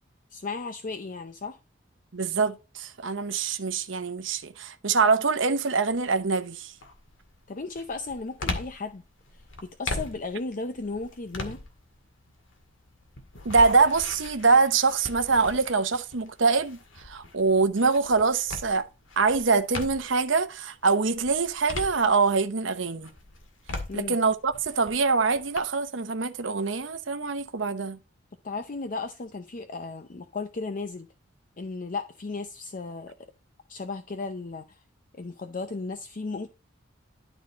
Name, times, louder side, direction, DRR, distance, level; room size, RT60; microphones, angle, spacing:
voice 1, 0.3-1.6 7.5-9.0 9.6-11.6 23.9-24.2 28.4-31.1 31.6-33.1 33.7-34.8 35.1-36.5, left 3 dB, 45° left, 0.6 m, -35 dB
voice 2, 2.1-6.7 13.4-16.8 17.0-18.9 19.2-23.1 23.9-28.0, right 4 dB, 75° right, 1.0 m, -24 dB
sound 1, 5.9-6.3 6.8-20.3 20.7-22.6 23.0-25.6, left 2 dB, 75° left, 1.9 m, -39 dB
12.0 x 4.1 x 4.0 m
head